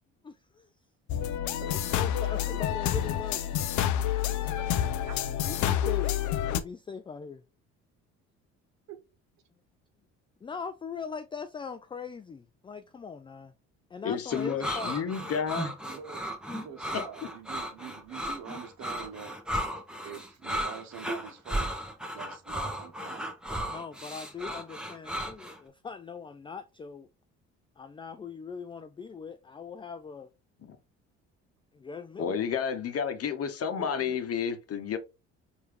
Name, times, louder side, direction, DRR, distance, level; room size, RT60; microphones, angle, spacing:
voice 1, 0.2-0.7 1.6-3.7 4.2-4.5 5.4-7.4 10.4-13.5 13.9-15.0 23.7-27.1 27.8-30.3 31.7-32.4, left 5 dB, 15° left, 0.3 m, -41 dB
sound 1, 1.1-6.6, left 11 dB, 60° left, 0.6 m, -28 dB
voice 2, 1.6-2.0 4.3-4.7 5.1-5.2 8.9-9.0 15.9-19.4 20.0-23.4 33.8-34.2, right 8 dB, 55° right, 1.0 m, -45 dB
voice 3, 14.0-15.8 16.9-17.0 30.6-30.8 32.2-35.0, left 7 dB, 45° left, 0.9 m, -31 dB
sound 2, 14.3-25.6, equal, ahead, 1.0 m, -35 dB
4.6 x 2.7 x 3.2 m
hypercardioid pair, 60°, 33 cm